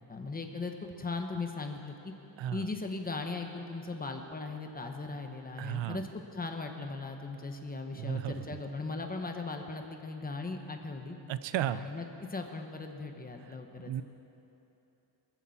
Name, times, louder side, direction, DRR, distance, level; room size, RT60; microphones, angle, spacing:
voice 1, 0.1-2.1 2.5-11.2 11.7-14.0, left 3 dB, 20° left, 4 dB, 1.1 m, -38 dB
voice 2, 5.6-6.0 7.9-8.4 11.3-11.9 13.8-14.0, right 11 dB, 80° right, 13 dB, 0.6 m, -34 dB
23.5 x 14.5 x 4.2 m, 3.0 s
wide cardioid pair, 165°, 44 cm